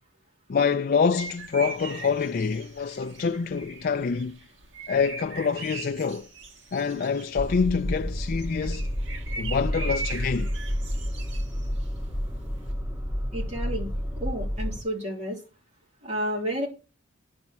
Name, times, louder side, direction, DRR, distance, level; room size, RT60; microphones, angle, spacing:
voice 1, 0.5-4.4 4.9-6.3 6.7-8.9 9.4-10.5, left 5 dB, 50° left, 0.4 m, -26 dB
sound 1, 1.0-12.7, right 4 dB, 70° right, 1.8 m, -41 dB
sound 2, 7.4-14.8, equal, 5° right, 2.6 m, -30 dB
voice 2, 13.3-13.9 14.2-15.4 16.0-16.7, equal, 35° right, 3.4 m, -31 dB
10.5 x 4.4 x 7.2 m
head